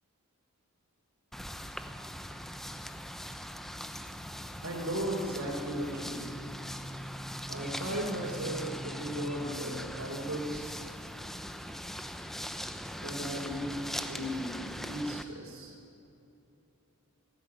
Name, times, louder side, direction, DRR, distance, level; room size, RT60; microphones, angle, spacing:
sound 1, 1.3-15.2, equal, ahead, 0.8 m, -41 dB
voice 1, 4.6-6.4 7.5-10.7 13.0-13.8 14.1-15.8, right 1 dB, 70° right, -4 dB, 3.8 m, -36 dB
19.0 x 16.0 x 9.6 m, 2.9 s
head